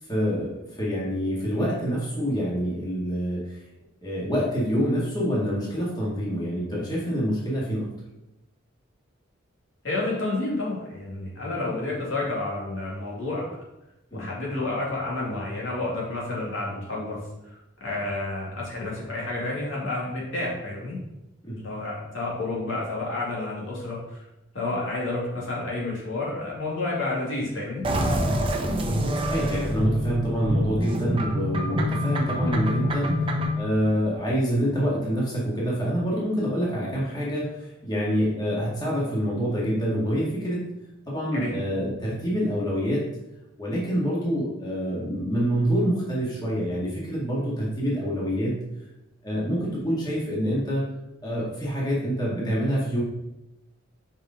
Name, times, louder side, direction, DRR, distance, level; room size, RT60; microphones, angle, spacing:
voice 1, 0.1-3.6 4.0-7.9 14.1-14.3 21.4-21.6 29.1-33.3 33.6-40.6 41.1-43.0 43.6-48.6 49.2-50.9 51.2-53.0, equal, 20° left, -6 dB, 1.9 m, -26 dB
voice 2, 9.8-13.5 14.1-17.2 17.4-21.0 21.6-24.3 24.5-27.8 41.3-41.5, left 2 dB, 70° left, -5 dB, 2.3 m, -30 dB
sound 1, 27.8-33.6, equal, 25° right, 0.8 m, -26 dB
5.3 x 5.2 x 5.0 m, 0.92 s
head